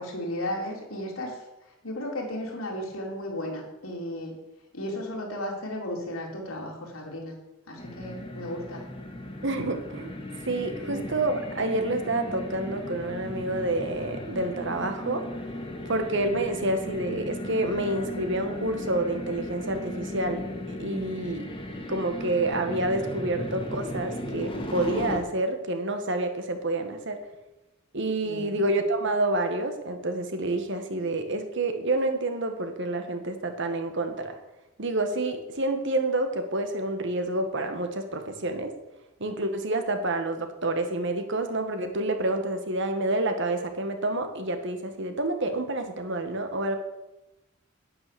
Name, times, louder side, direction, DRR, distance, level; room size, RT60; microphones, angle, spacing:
voice 1, 0.0-1.4 1.8-4.3 4.7-7.4 7.7-8.8 10.9-11.1 28.2-28.6, left 1 dB, 90° left, -1 dB, 3.6 m, -34 dB
sound 1, 7.8-25.2, left 1 dB, 25° left, 1.9 m, -36 dB
voice 2, 9.4-10.1 10.5-15.3 15.9-21.5 21.9-27.2 27.9-34.3 34.8-38.7 39.2-46.8, right 2 dB, 60° right, 6 dB, 1.6 m, -28 dB
9.6 x 9.4 x 7.0 m, 0.97 s
head